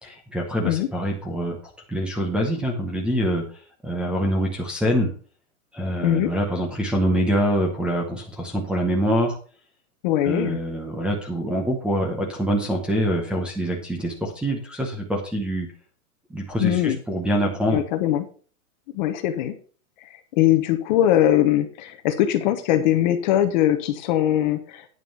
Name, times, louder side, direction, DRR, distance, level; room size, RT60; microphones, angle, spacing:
voice 1, 0.0-1.6 1.9-3.4 3.8-5.1 5.7-9.3 10.2-15.7 16.3-17.8, equal, ahead, -3 dB, 0.8 m, -25 dB
voice 2, 6.0-6.3 10.0-10.6 16.6-17.0 17.7-18.3 18.9-19.6 20.4-24.9, left 12 dB, 30° left, 8 dB, 0.9 m, -21 dB
9.3 x 5.9 x 5.5 m, 0.40 s
hypercardioid pair, 160°, 44 cm